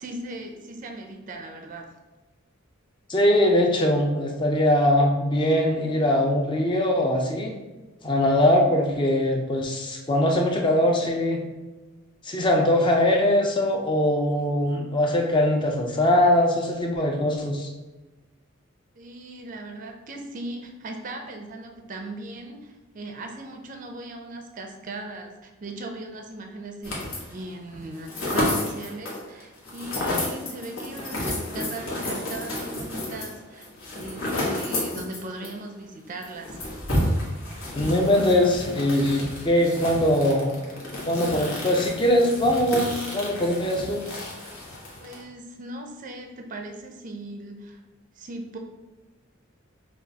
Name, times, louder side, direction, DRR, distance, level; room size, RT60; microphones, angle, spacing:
voice 1, 0.0-1.9 18.9-33.7 34.0-36.6 45.0-47.8 48.2-48.6, right 2 dB, 40° right, 4 dB, 0.4 m, -38 dB
voice 2, 3.1-7.6 8.0-11.4 12.2-17.7 37.7-40.5 41.1-44.1, left 1 dB, 20° left, 1 dB, 0.5 m, -22 dB
sound 1, 26.8-27.4 27.7-35.6 35.8-35.9 36.2-45.2, left 1 dB, 75° left, 1.1 m, -31 dB
5.9 x 2.3 x 2.8 m, 1.2 s
head